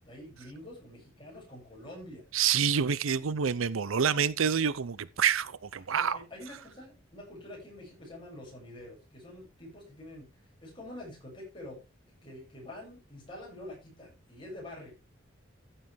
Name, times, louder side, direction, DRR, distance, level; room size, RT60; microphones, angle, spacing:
voice 1, 0.0-2.2 5.9-10.3 10.6-11.8 12.1-14.9, left 1 dB, 25° left, 6.9 m, -46 dB
voice 2, 2.3-6.2, right 7 dB, 80° right, 0.6 m, -27 dB
14.0 x 7.8 x 3.5 m
head